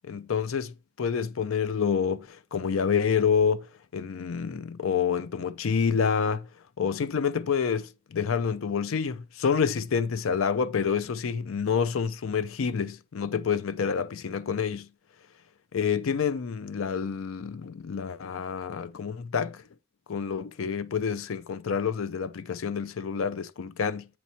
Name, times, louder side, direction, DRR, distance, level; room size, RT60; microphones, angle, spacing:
voice 1, 0.0-3.7 3.9-6.5 6.8-14.9 15.7-19.6 20.1-24.1, left 6 dB, 80° left, 0.5 m, -28 dB
8.1 x 2.9 x 4.2 m
head